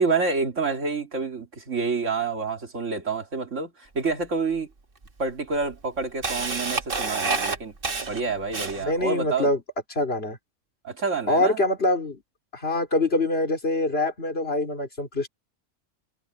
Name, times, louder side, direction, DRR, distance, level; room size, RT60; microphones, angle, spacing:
voice 1, 0.0-4.7 5.2-7.7 8.1-9.5 10.8-11.6, right 4 dB, 70° right, 2.7 m, -28 dB
Camera, 4.1-4.2 5.0-5.1 5.6-9.0, right 4 dB, 45° right, 1.8 m, -28 dB
voice 2, 8.8-9.6 10.0-10.4 11.3-12.2 12.5-15.3, left 2 dB, 50° left, 3.9 m, -24 dB
omnidirectional pair, 1.3 m